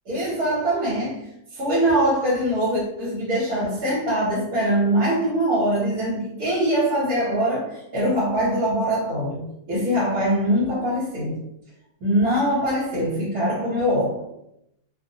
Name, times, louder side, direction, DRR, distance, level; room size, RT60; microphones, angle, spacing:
voice 1, 0.1-11.4 12.0-14.2, right 1 dB, 70° right, -7 dB, 1.3 m, -23 dB
2.7 x 2.1 x 2.6 m, 0.79 s
omnidirectional pair, 1.6 m